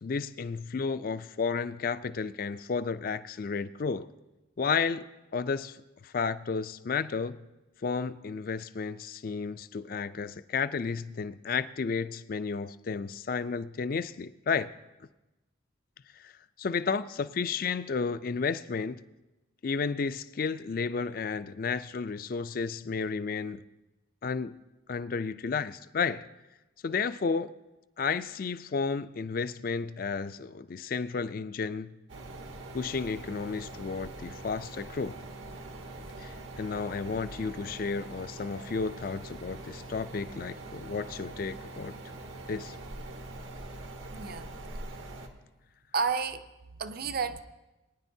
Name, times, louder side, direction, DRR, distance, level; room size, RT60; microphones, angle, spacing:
voice 1, 0.0-4.1 4.6-5.0 5.3-7.4 7.8-14.7 16.2-16.3 16.6-19.0 19.6-23.6 24.2-24.6 24.9-26.3 26.8-27.5 28.0-31.9 32.7-35.2 36.2-41.9 42.5-42.8, left 5 dB, 45° left, 0.4 m, -32 dB
sound 1, 32.1-45.3, right 2 dB, 80° right, 1.2 m, -43 dB
voice 2, 44.1-44.5 45.9-47.4, right 5 dB, 50° right, 0.5 m, -31 dB
22.0 x 9.8 x 2.7 m
head